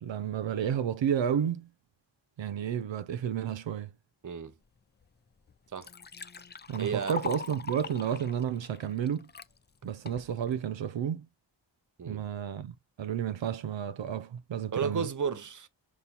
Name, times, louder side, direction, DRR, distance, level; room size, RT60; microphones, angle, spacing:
voice 1, 0.0-1.7 2.4-3.9 6.7-9.3 9.8-11.3 12.0-15.1, right 9 dB, 80° right, 0.6 m, -31 dB
voice 2, 4.2-4.5 5.7-5.9 6.8-7.2 12.0-12.2 14.7-15.7, right 6 dB, 45° right, 0.7 m, -32 dB
Liquid, 5.0-5.1 5.5-9.5 10.1-10.5, left 5 dB, 25° left, 0.3 m, -41 dB
5.4 x 2.2 x 4.4 m
wide cardioid pair, 75°, 45 cm